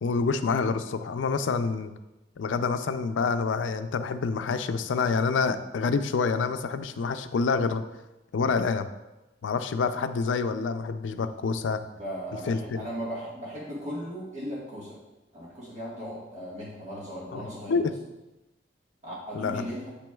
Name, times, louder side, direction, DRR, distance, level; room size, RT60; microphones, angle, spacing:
voice 1, 0.0-1.9 2.4-7.8 8.3-8.9 9.4-11.8 12.5-12.8 17.3-17.9 19.3-19.7, left 4 dB, 90° left, 10 dB, 0.4 m, -27 dB
voice 2, 12.0-15.0 15.3-17.8 19.0-19.9, equal, 40° right, -7 dB, 1.5 m, -37 dB
8.2 x 6.1 x 2.3 m, 1.0 s
head